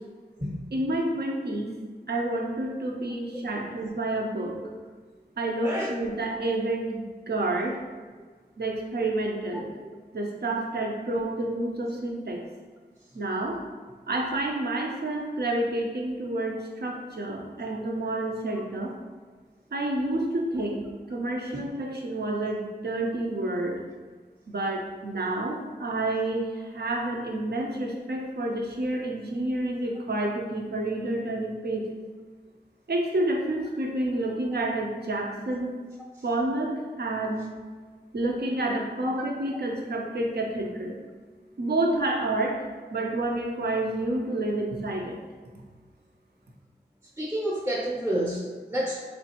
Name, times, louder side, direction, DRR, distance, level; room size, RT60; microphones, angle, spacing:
voice 1, 0.7-1.7 2.1-4.5 5.4-7.8 8.6-9.7 10.1-12.4 13.1-13.6 14.1-18.9 19.7-20.8 21.1-23.8 24.5-31.9 32.9-35.7 36.2-37.5 38.1-41.0 41.6-42.6 42.9-45.1, right 2 dB, 65° right, 0 dB, 0.6 m, -29 dB
voice 2, 5.6-6.0 47.2-49.0, right 1 dB, 15° right, -4 dB, 0.7 m, -29 dB
3.7 x 3.2 x 2.9 m, 1.5 s
wide cardioid pair, 55°, 18 cm